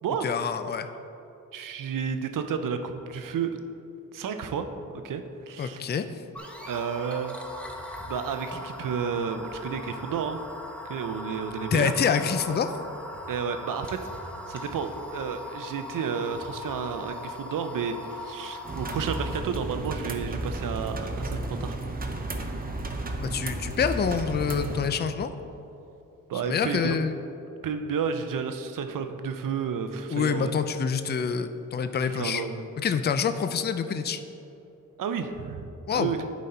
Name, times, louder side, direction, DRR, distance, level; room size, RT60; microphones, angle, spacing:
voice 1, 0.2-0.9 5.6-6.1 11.7-12.7 23.2-25.3 26.4-27.2 30.1-32.4 32.8-34.2 35.9-36.2, left 6 dB, 30° left, 9 dB, 0.4 m, -26 dB
voice 2, 1.5-3.6 4.1-4.7 5.0-5.8 6.7-7.4 8.0-10.4 10.9-11.9 13.3-14.0 14.5-21.8 26.3-27.0 27.6-30.5 32.0-32.6 35.0-36.2, right 6 dB, 80° right, 8 dB, 0.6 m, -31 dB
sound 1, 6.3-19.4, left 1 dB, 5° left, 0.8 m, -40 dB
sound 2, 18.6-24.9, right 2 dB, 25° right, 0.7 m, -33 dB
10.5 x 4.1 x 4.3 m, 2.8 s
cardioid pair, 85°, 32 cm